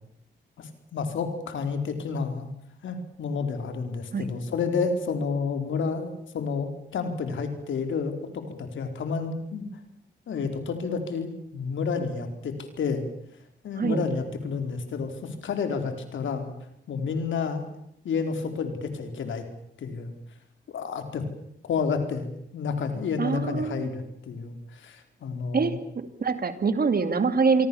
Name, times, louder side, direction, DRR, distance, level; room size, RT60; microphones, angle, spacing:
voice 1, 0.6-2.5 2.8-9.7 10.3-13.0 13.6-16.5 16.9-17.6 18.0-19.5 19.8-20.1 20.7-21.2 21.6-25.8, left 5 dB, 85° left, 7 dB, 4.4 m, -30 dB
voice 2, 23.2-23.9 25.5-25.7 26.2-27.7, right 5 dB, 50° right, 10 dB, 2.8 m, -24 dB
27.0 x 24.0 x 7.2 m, 0.76 s
cardioid pair, 75°, 19 cm